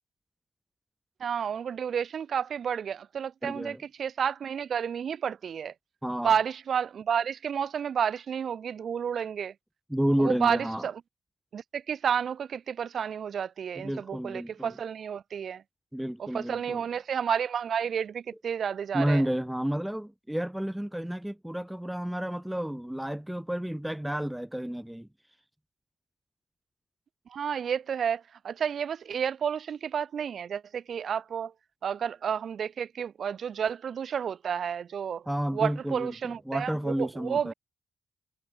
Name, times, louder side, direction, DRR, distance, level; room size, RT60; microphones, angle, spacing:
voice 1, 1.2-5.7 6.2-9.5 10.2-11.0 11.5-15.6 16.2-19.2 27.3-31.5 31.8-35.2 35.5-37.5, right 7 dB, 40° right, 1.1 m, -31 dB
voice 2, 3.4-3.8 6.0-6.3 9.9-10.9 13.8-14.7 15.9-16.8 18.9-25.1 35.3-37.5, equal, 5° right, 0.8 m, -31 dB
cardioid pair, 180°, 0 cm